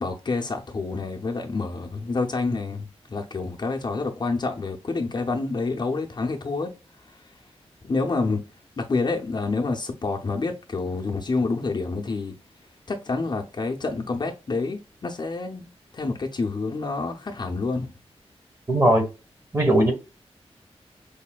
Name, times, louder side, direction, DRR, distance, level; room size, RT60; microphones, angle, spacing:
voice 1, 0.0-6.7 7.8-8.4 8.8-12.3 12.9-15.7 15.9-17.9, left 3 dB, 40° left, 0.6 m, -28 dB
voice 2, 18.7-19.1 19.5-19.9, right 1 dB, 25° right, 1.2 m, -18 dB
4.9 x 2.6 x 2.2 m
wide cardioid pair, 125°, 11 cm